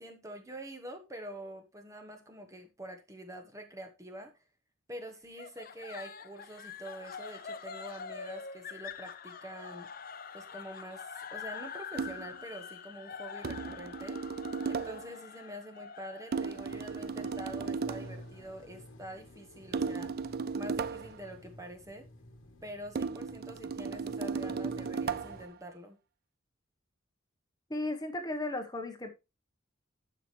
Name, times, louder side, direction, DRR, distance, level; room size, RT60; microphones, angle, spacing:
voice 1, 0.0-4.3 4.9-9.9 10.3-14.2 14.7-20.1 20.5-22.1 22.6-26.0, right 1 dB, 15° right, 1.2 m, -46 dB
sound 1, 5.4-18.5, left 6 dB, 45° left, 0.7 m, -45 dB
sound 2, 11.9-12.4 13.4-15.1 16.3-18.2 19.7-21.2 23.0-25.5, right 5 dB, 50° right, 0.4 m, -35 dB
sound 3, 16.5-25.5, left 1 dB, 75° left, 1.5 m, -52 dB
voice 2, 27.7-29.1, left 2 dB, 20° left, 1.1 m, -35 dB
11.5 x 5.8 x 3.2 m
head